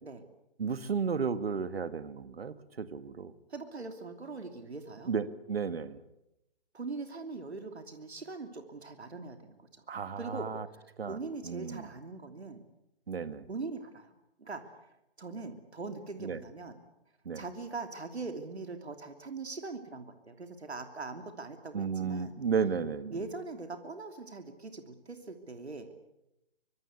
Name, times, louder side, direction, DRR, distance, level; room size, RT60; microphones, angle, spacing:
voice 1, 0.6-3.3 5.1-6.0 9.9-10.6 11.0-11.2 11.4-11.9 13.1-13.5 16.2-16.4 17.3-17.4 21.7-23.2, right 6 dB, 70° right, 13 dB, 2.0 m, -33 dB
voice 2, 3.5-5.1 6.7-9.8 10.2-10.5 10.7-12.6 13.5-16.8 17.3-22.4 23.1-25.9, right 3 dB, 85° right, 7 dB, 3.0 m, -42 dB
24.0 x 24.0 x 8.3 m, 0.88 s
figure-of-eight pair, 150°, 32 cm